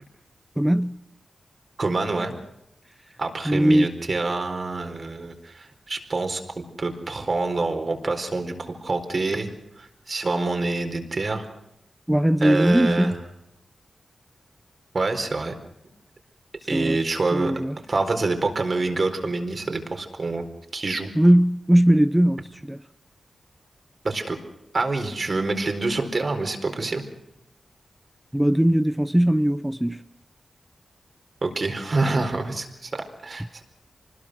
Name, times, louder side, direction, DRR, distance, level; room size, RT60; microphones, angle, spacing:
voice 1, 0.6-1.0 3.4-3.9 12.1-13.2 16.7-17.0 17.3-17.8 21.1-22.8 28.3-30.0, right 1 dB, 10° right, 0.8 m, -19 dB
voice 2, 1.8-2.3 3.2-9.5 9.8-11.4 12.4-13.1 14.9-15.5 16.7-17.5 17.9-20.4 20.7-21.1 24.0-24.4 24.7-27.0 31.4-33.6, right 3 dB, 55° right, 4.4 m, -26 dB
25.0 x 20.5 x 6.4 m
cardioid pair, 40°, 0 cm